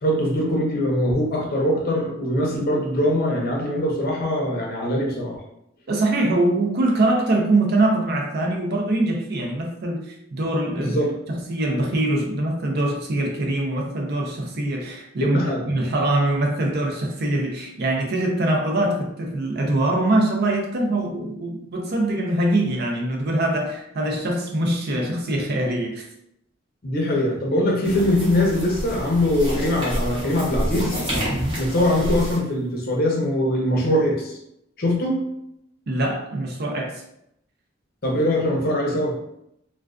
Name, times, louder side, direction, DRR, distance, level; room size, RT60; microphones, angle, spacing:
voice 1, 0.0-5.4 10.7-11.1 15.2-15.7 26.8-31.0 31.6-34.4 34.8-35.1 38.0-39.1, left 1 dB, 50° left, -1 dB, 0.6 m, -22 dB
voice 2, 5.9-11.0 11.3-15.4 15.7-26.0 31.3-31.6 35.9-37.0, right 1 dB, 55° right, 1 dB, 0.5 m, -23 dB
sound 1, 27.8-32.4, equal, 25° right, 0.9 m, -28 dB
2.3 x 2.3 x 2.3 m, 0.77 s
head